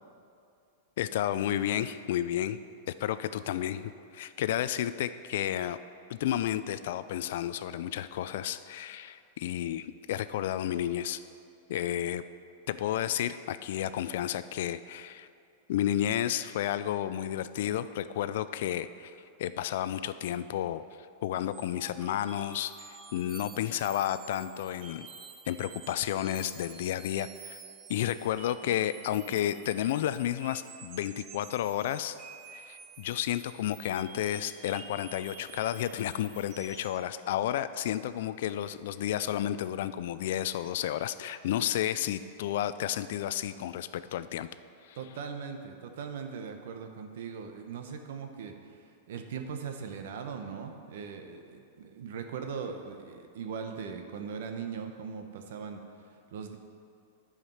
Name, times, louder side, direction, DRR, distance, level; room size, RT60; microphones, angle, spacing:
voice 1, 1.0-2.6 2.9-5.8 6.1-11.2 11.7-12.2 12.7-15.3 15.7-19.1 19.4-20.8 21.2-25.1 25.5-27.6 27.9-32.1 32.5-44.5 44.8-45.0, left 11 dB, 60° left, 13 dB, 0.3 m, -32 dB
sound 1, 21.5-37.0, right 6 dB, 25° right, 0.6 m, -50 dB
voice 2, 45.0-55.8 56.3-56.6, right 6 dB, 65° right, 5 dB, 0.9 m, -40 dB
11.0 x 5.0 x 5.6 m, 2.4 s
supercardioid pair, 160°, 0 cm